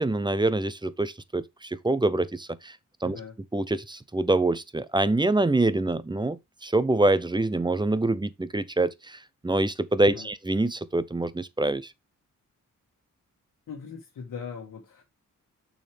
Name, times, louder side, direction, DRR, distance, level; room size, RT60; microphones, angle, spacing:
voice 1, 0.0-2.8 3.0-3.2 3.5-11.9, right 2 dB, 15° right, 0.7 m, -25 dB
voice 2, 3.0-3.4 10.1-10.3 13.7-15.0, left 6 dB, 80° left, 1.6 m, -40 dB
6.4 x 6.4 x 3.4 m
cardioid pair, 75°, 32 cm